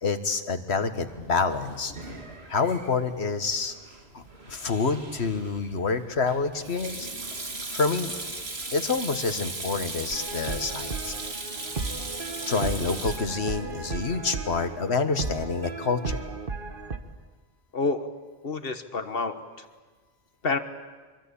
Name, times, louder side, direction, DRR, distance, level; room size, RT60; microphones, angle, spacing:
voice 1, 0.0-1.9 2.5-3.7 4.1-7.1 7.7-8.1 8.7-11.2 12.4-16.2, left 4 dB, 85° left, 9 dB, 1.8 m, -27 dB
Sink (filling or washing), 1.1-14.8, right 2 dB, 75° right, 2.8 m, -38 dB
sound 1, 10.1-17.0, right 4 dB, 55° right, 1.6 m, -35 dB
voice 2, 17.7-18.1 18.4-19.6 20.4-20.6, left 3 dB, 60° left, 8 dB, 1.6 m, -28 dB
25.0 x 24.0 x 8.7 m, 1.4 s
omnidirectional pair, 1.1 m